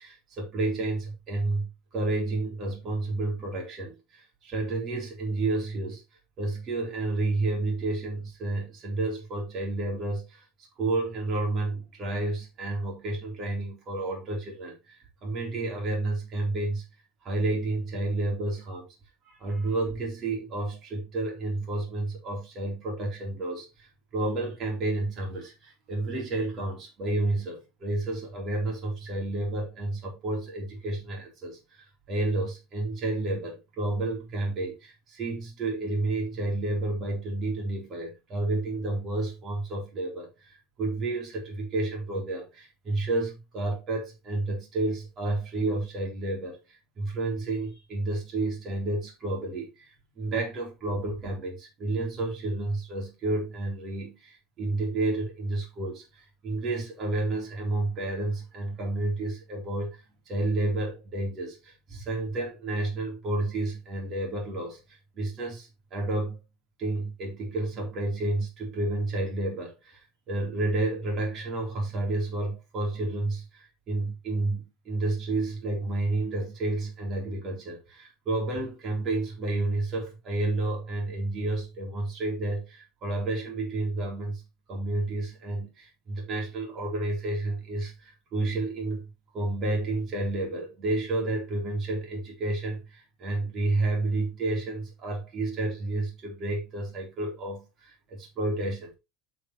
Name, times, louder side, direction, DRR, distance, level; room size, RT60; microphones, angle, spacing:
voice 1, 0.0-6.0 6.4-10.5 10.8-16.8 17.2-18.9 19.3-60.0 60.3-66.4 66.8-84.4 84.7-98.9, right 2 dB, 35° right, 3.8 m, -31 dB
8.3 x 7.3 x 3.2 m
cardioid pair, 145°, 0 cm